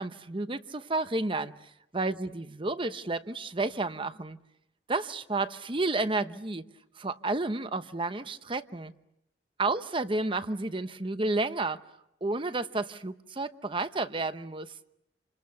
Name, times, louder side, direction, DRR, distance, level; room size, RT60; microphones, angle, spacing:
voice 1, 0.0-4.4 4.9-6.6 7.0-8.9 9.6-11.8 12.2-14.7, right 2 dB, 30° right, 0.9 m, -31 dB
28.0 x 26.5 x 6.9 m
head